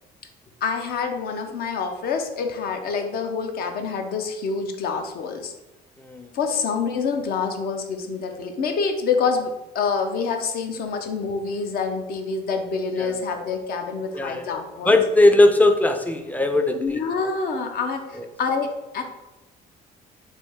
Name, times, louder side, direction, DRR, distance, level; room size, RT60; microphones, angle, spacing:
voice 1, 0.6-5.5 6.3-15.0 16.8-19.0, left 5 dB, 65° left, 5 dB, 0.6 m, -27 dB
voice 2, 6.0-6.3 13.0-13.2 14.1-14.5 14.8-17.0 18.2-18.3, left 2 dB, 10° left, 6 dB, 0.4 m, -19 dB
3.4 x 2.7 x 4.4 m, 1.0 s
cardioid pair, 110°, 17 cm